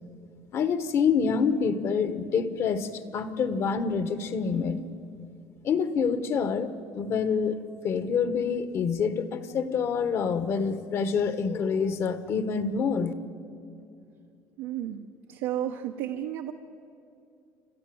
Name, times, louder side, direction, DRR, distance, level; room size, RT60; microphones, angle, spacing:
voice 1, 0.5-4.9 5.6-7.6 7.8-13.1, left 6 dB, 50° left, 12 dB, 1.3 m, -27 dB
voice 2, 14.6-15.0 15.3-16.5, right 11 dB, 90° right, 3 dB, 1.0 m, -32 dB
28.5 x 13.5 x 7.8 m, 2.6 s
cardioid pair, 130°, 6 cm